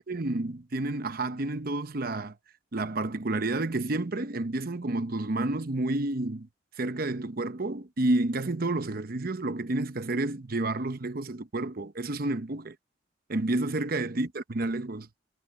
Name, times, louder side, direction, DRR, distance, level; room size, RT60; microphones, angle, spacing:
voice 1, 0.1-2.3 2.7-6.5 6.8-12.8 13.3-15.1, right 2 dB, 50° right, 0.8 m, -30 dB
head